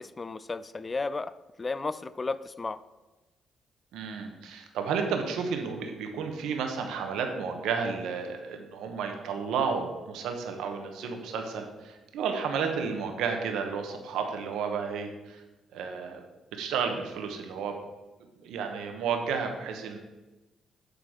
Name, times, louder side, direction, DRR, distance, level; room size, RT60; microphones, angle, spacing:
voice 1, 0.0-2.8, left 3 dB, 30° left, 16 dB, 0.3 m, -34 dB
voice 2, 3.9-15.4 15.7-16.2 16.5-17.8 18.4-20.0, right 6 dB, 85° right, 4 dB, 1.0 m, -32 dB
8.1 x 4.0 x 6.3 m, 1.1 s
cardioid pair, 90°, 0 cm